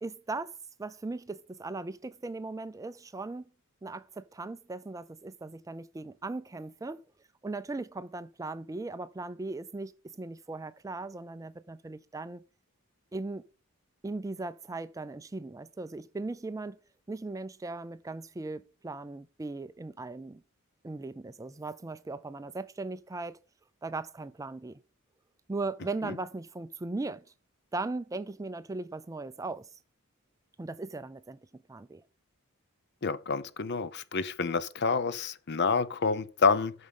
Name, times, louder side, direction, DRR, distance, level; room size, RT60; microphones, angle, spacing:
voice 1, 0.0-3.5 3.8-7.0 7.4-12.4 13.1-13.4 14.0-16.8 17.1-20.4 20.8-23.4 23.8-24.8 25.5-27.2 27.7-29.7 30.6-32.0, right 3 dB, 15° right, 0.3 m, -38 dB
voice 2, 33.0-36.7, left 5 dB, 50° left, 0.7 m, -28 dB
9.0 x 6.2 x 5.5 m
head